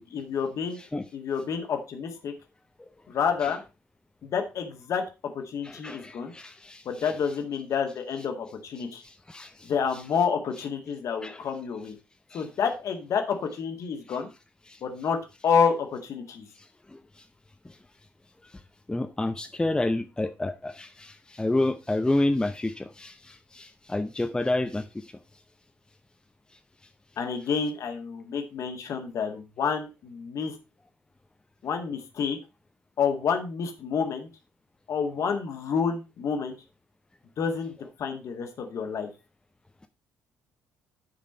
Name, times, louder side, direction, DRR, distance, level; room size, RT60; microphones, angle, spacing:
voice 1, 0.1-0.8 1.1-2.3 3.1-3.6 4.2-5.0 5.3-6.3 6.9-9.0 9.6-11.9 12.3-14.3 14.8-15.2 15.4-16.5 27.2-30.5 31.6-32.4 33.0-34.3 34.9-36.6 37.4-39.1, left 6 dB, 50° left, 1.8 m, -29 dB
voice 2, 5.6-7.1 9.3-9.5 11.2-11.4 12.3-12.4 18.9-23.1 23.5-24.8, left 2 dB, 10° left, 0.8 m, -29 dB
11.0 x 5.2 x 4.3 m
figure-of-eight pair, 45°, 7 cm